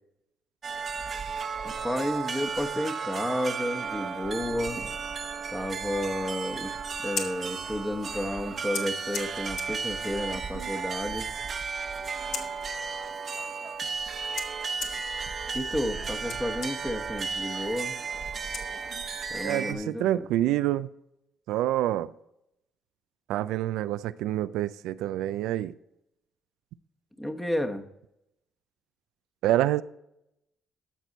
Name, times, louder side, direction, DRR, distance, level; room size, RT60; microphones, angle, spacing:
sound 1, 0.6-19.7, right 5 dB, 40° right, 0.9 m, -34 dB
voice 1, 1.6-4.8 5.5-6.7 7.0-11.3 15.5-18.0 19.3-20.2 27.2-27.8, left 1 dB, 10° left, 1.1 m, -31 dB
Scissors, 6.9-19.3, left 6 dB, 70° left, 1.3 m, -43 dB
voice 2, 19.4-20.9 21.5-22.1 23.3-25.7 29.4-29.8, right 13 dB, 90° right, 0.3 m, -27 dB
12.5 x 6.1 x 4.0 m
cardioid pair, 105°, 0 cm